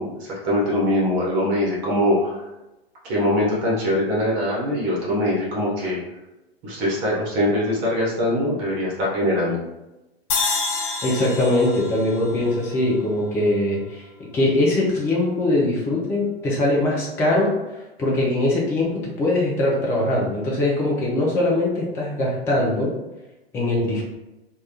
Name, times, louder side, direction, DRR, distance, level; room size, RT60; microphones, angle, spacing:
voice 1, 0.0-2.4 3.0-6.0 6.6-9.6, left 1 dB, 35° right, -5 dB, 0.8 m, -22 dB
sound 1, 10.3-13.6, left 4 dB, 55° left, 0.6 m, -28 dB
voice 2, 11.0-14.1 14.3-17.5 18.0-22.9 23.5-24.0, left 1 dB, 10° left, -3 dB, 0.3 m, -21 dB
2.2 x 2.1 x 2.7 m, 1.0 s
figure-of-eight pair, 100°, 31 cm